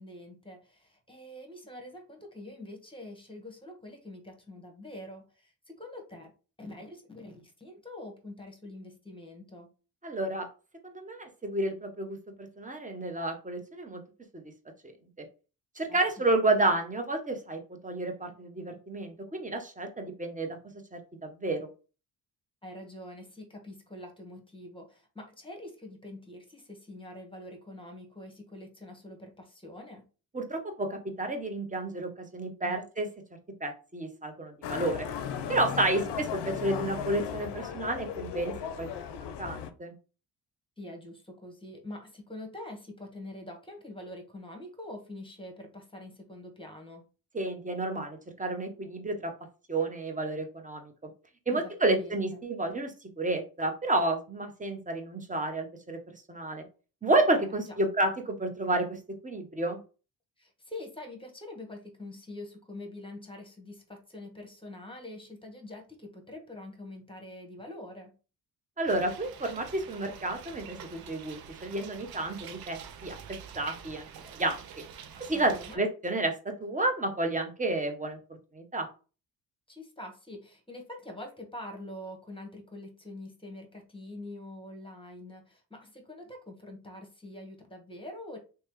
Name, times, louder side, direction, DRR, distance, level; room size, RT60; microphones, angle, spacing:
voice 1, 0.0-6.3 6.6-9.7 15.9-16.3 22.6-30.0 32.6-32.8 35.7-36.2 40.8-47.0 51.5-52.4 57.7-57.8 60.4-68.1 75.3-75.8 79.7-88.4, left 1 dB, 10° left, 3 dB, 1.2 m, -45 dB
voice 2, 10.0-10.5 10.8-14.0 14.3-14.4 15.8-20.6 20.9-21.7 30.3-33.1 33.6-35.1 35.5-38.9 39.4-39.9 47.3-49.3 49.7-51.1 51.5-56.0 56.3-56.7 57.0-59.8 68.8-74.6 75.2-78.2 78.5-78.9, right 2 dB, 15° right, 4 dB, 0.9 m, -31 dB
Motorcycle, 34.6-39.7, left 8 dB, 60° left, 0.6 m, -36 dB
sound 1, 68.9-75.8, right 8 dB, 55° right, 0.6 m, -46 dB
3.0 x 2.2 x 3.0 m, 0.34 s
supercardioid pair, 50°, 46 cm